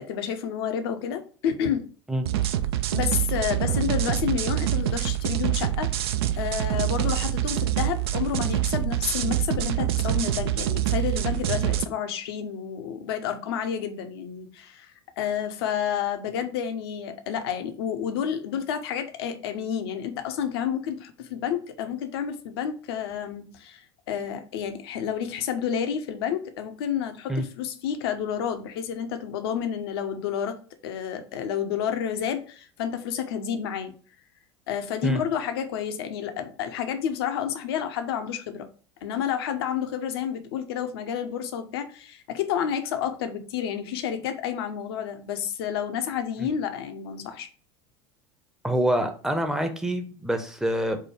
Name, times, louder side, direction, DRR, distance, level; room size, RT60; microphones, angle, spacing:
voice 1, 0.0-1.9 2.9-6.0 6.3-30.6 30.8-33.9 34.7-38.7 39.0-47.5, left 8 dB, 60° left, 0.7 m, -30 dB
sound 1, 2.2-11.8, right 12 dB, 65° right, 0.4 m, -26 dB
voice 2, 48.6-51.0, right 1 dB, 5° right, 0.7 m, -26 dB
4.7 x 2.2 x 4.4 m
figure-of-eight pair, 75°, 14 cm